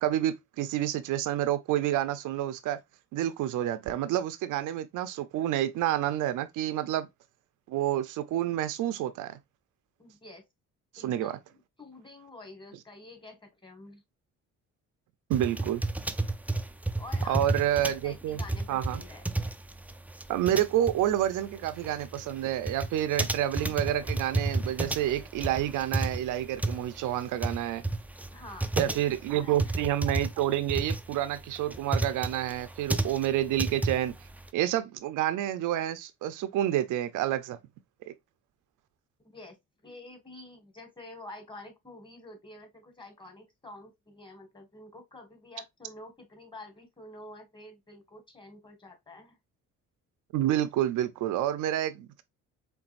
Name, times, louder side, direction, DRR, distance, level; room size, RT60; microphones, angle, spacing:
voice 1, 0.0-2.8 3.1-7.1 7.7-9.4 11.0-11.4 15.3-15.8 17.3-18.4 18.7-19.0 20.3-27.8 28.8-34.1 34.5-37.6 38.1-38.2 50.3-52.2, right 12 dB, 85° right, 0.7 m, -29 dB
voice 2, 10.0-10.5 11.0-14.0 17.0-17.4 18.0-19.2 28.3-29.8 39.2-49.4, left 1 dB, 15° left, 1.9 m, -48 dB
sound 1, 15.3-34.5, right 2 dB, 5° right, 0.4 m, -31 dB
4.6 x 3.3 x 2.5 m
cardioid pair, 90°, 30 cm